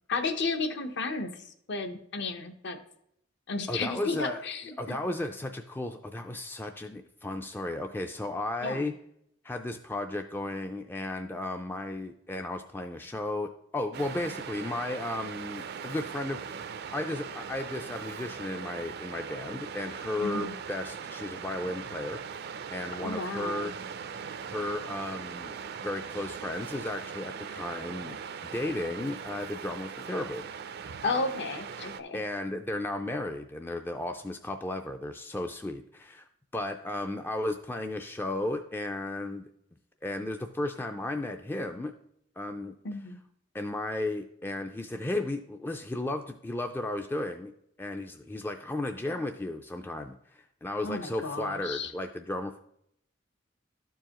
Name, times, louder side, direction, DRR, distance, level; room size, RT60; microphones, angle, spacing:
voice 1, 0.1-1.4 1.7-2.8 3.5-4.7 8.6-8.9 20.2-20.5 22.9-23.7 31.0-32.2 42.8-43.2 50.8-51.9, left 3 dB, 65° left, 7 dB, 0.8 m, -33 dB
voice 2, 3.7-4.4 4.8-8.9 9.4-16.6 16.9-22.2 22.7-23.7 24.4-25.5 25.8-28.2 28.4-30.4 32.1-36.3 36.5-39.5 40.0-41.9 42.4-42.7 43.5-47.5 47.8-52.6, left 1 dB, 10° left, 5 dB, 0.3 m, -34 dB
Waves surf, 13.9-32.0, right 6 dB, 55° right, 0.4 m, -40 dB
12.5 x 4.6 x 2.9 m, 0.73 s
head